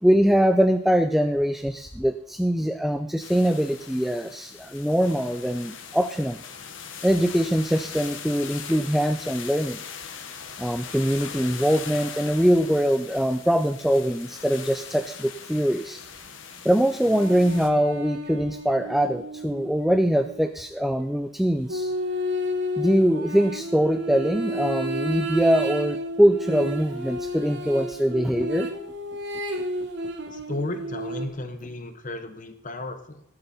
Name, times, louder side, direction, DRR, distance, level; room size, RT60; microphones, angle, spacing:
voice 1, 0.0-6.4 7.0-9.8 10.6-16.0 16.6-21.9 22.8-28.7, equal, ahead, 9 dB, 0.4 m, -23 dB
sound 1, 3.2-17.7, left 7 dB, 80° left, 1.3 m, -40 dB
sound 2, 17.1-20.6 21.7-31.3, equal, 65° right, 1.4 m, -32 dB
voice 2, 30.3-33.2, left 2 dB, 40° left, 8 dB, 1.0 m, -34 dB
19.0 x 7.8 x 4.2 m, 0.71 s
head